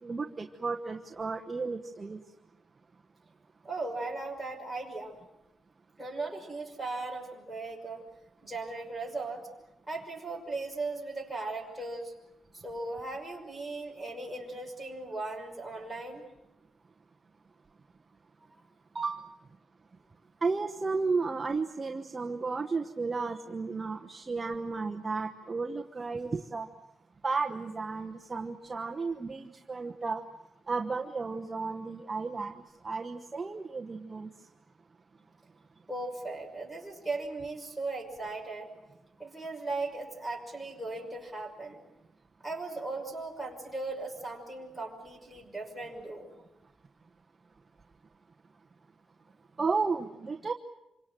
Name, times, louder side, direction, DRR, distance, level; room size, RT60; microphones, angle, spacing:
voice 1, 0.0-2.2 18.9-19.2 20.4-26.7 27.2-30.2 30.7-34.3 49.6-50.5, right 4 dB, 20° right, 3 dB, 1.1 m, -33 dB
voice 2, 3.6-5.2 6.0-8.0 8.4-9.5 9.9-12.1 12.5-16.2 35.9-38.7 39.2-41.8 42.4-46.3, right 2 dB, ahead, 4 dB, 5.7 m, -37 dB
27.5 x 25.0 x 7.6 m, 0.92 s
wide cardioid pair, 160°, 0 cm